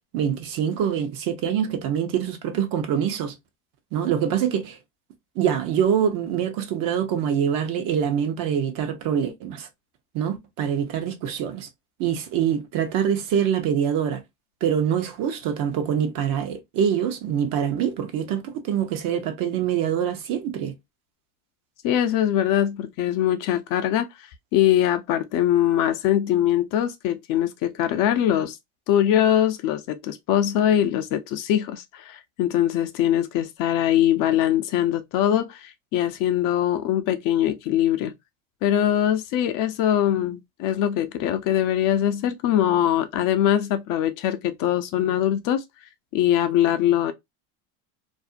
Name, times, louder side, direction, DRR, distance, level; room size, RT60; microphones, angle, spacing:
voice 1, 0.1-3.4 3.9-4.8 5.4-9.7 10.1-11.7 12.0-14.2 14.6-20.8, right 8 dB, 50° right, 0.7 m, -25 dB
voice 2, 21.8-24.1 24.5-28.6 28.9-38.1 38.6-45.6 46.1-47.1, left 11 dB, 50° left, 0.5 m, -22 dB
2.5 x 2.0 x 2.4 m
supercardioid pair, 100°, 42 cm